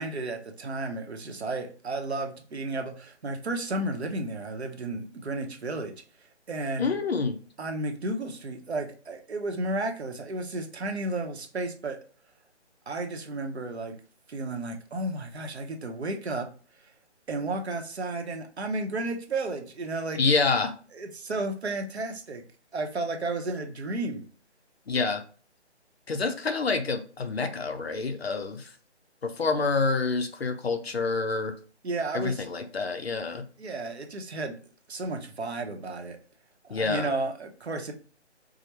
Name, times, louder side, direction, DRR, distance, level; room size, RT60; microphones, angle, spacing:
voice 1, 0.0-5.9 6.5-6.9 7.6-12.0 12.9-14.0 14.3-16.5 16.8-16.9 17.3-20.2 20.9-22.4 22.7-24.2 31.8-32.4 33.6-34.6 34.9-36.2 36.6-37.9, right 2 dB, 65° right, 4 dB, 0.8 m, -33 dB
voice 2, 6.8-7.4 20.1-20.7 24.9-25.2 26.1-28.7 29.2-31.5 32.1-33.4 36.7-37.1, left 4 dB, 60° left, 7 dB, 0.6 m, -27 dB
4.8 x 2.1 x 2.9 m, 0.41 s
hypercardioid pair, 175°, 35 cm